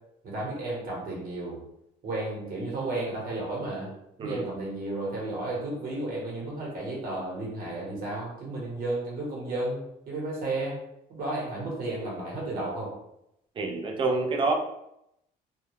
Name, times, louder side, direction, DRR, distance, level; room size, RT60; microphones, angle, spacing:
voice 1, 0.2-1.6 2.0-3.9 4.2-10.8 11.1-12.9, right 2 dB, 60° right, -3 dB, 1.0 m, -33 dB
voice 2, 13.6-14.5, right 3 dB, 30° right, 2 dB, 0.4 m, -27 dB
2.2 x 2.0 x 3.1 m, 0.81 s
cardioid pair, 110°, 17 cm